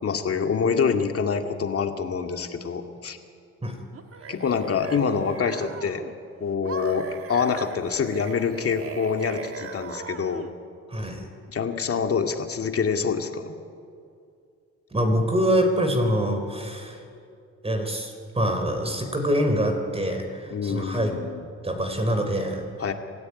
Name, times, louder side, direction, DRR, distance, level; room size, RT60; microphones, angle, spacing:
voice 1, 0.0-3.2 4.3-6.0 6.4-10.4 11.5-13.6 20.5-21.5 22.8-22.9, left 6 dB, 50° left, 5 dB, 2.3 m, -26 dB
sound 1, 3.9-6.1 6.6-10.5, right 6 dB, 50° right, 1.9 m, -38 dB
voice 2, 10.9-11.2 14.9-17.0 17.6-21.2 21.6-22.6, equal, 20° right, 4 dB, 4.2 m, -25 dB
26.0 x 15.5 x 9.8 m, 2.4 s
cardioid pair, 90°, 30 cm